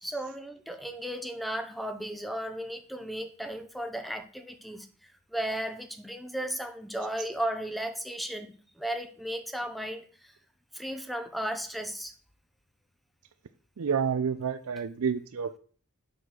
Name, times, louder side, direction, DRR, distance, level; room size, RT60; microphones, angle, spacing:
voice 1, 0.0-10.3 10.7-12.1, right 1 dB, ahead, 8 dB, 0.7 m, -35 dB
voice 2, 13.8-15.6, right 6 dB, 80° right, 11 dB, 0.5 m, -29 dB
7.6 x 4.2 x 6.4 m, 0.44 s
head